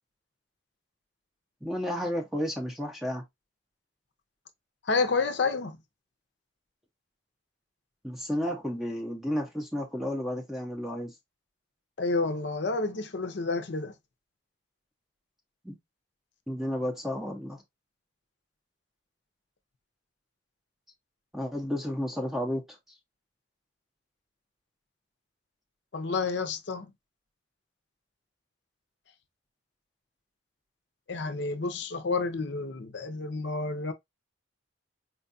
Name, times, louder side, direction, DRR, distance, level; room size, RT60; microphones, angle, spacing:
voice 1, 1.6-3.2 8.0-11.1 15.6-15.8 16.5-17.6 21.3-22.6, equal, ahead, 0.6 m, -32 dB
voice 2, 4.8-5.8 12.0-13.9 25.9-26.9 31.1-33.9, left 3 dB, 60° left, 0.6 m, -29 dB
4.4 x 2.3 x 2.5 m
head